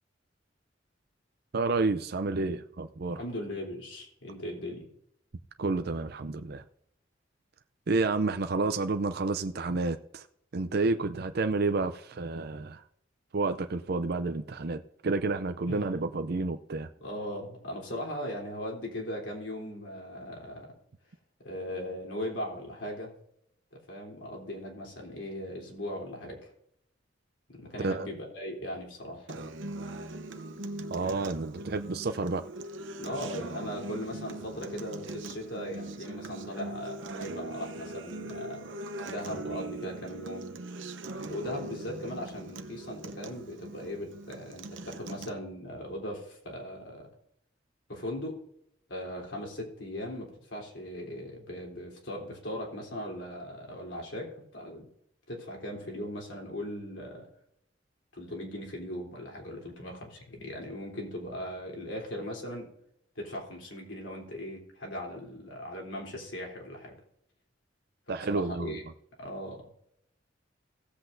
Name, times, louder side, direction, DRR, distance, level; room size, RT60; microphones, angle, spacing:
voice 1, 1.5-3.2 5.6-6.6 7.9-10.2 10.5-12.8 13.3-16.9 27.8-28.1 30.9-32.4 68.1-68.8, right 3 dB, 55° right, 0.5 m, -30 dB
voice 2, 3.2-4.9 15.7-15.9 17.0-20.7 21.4-23.1 23.9-26.5 27.5-29.5 33.0-40.6 41.2-47.1 47.9-48.4 48.9-54.9 55.3-57.3 58.1-62.7 63.2-67.0 68.1-68.8 69.2-69.6, equal, 75° left, 3.5 m, -39 dB
Acoustic guitar, 29.3-45.3, right 2 dB, 85° right, 0.8 m, -41 dB
17.0 x 8.0 x 2.6 m
head